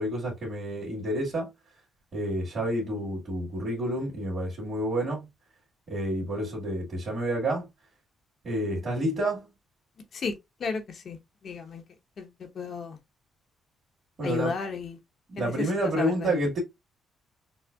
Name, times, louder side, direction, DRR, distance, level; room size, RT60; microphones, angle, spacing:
voice 1, 0.0-1.5 2.1-5.3 5.9-7.7 8.4-9.5 14.2-14.5 15.3-16.6, right 1 dB, 40° right, 2.1 m, -29 dB
voice 2, 10.1-11.2 11.4-11.8 12.2-13.0 14.2-15.0 15.4-15.7 16.0-16.5, left 5 dB, 55° left, 0.9 m, -33 dB
6.2 x 2.1 x 2.3 m
cardioid pair, 90°, 0 cm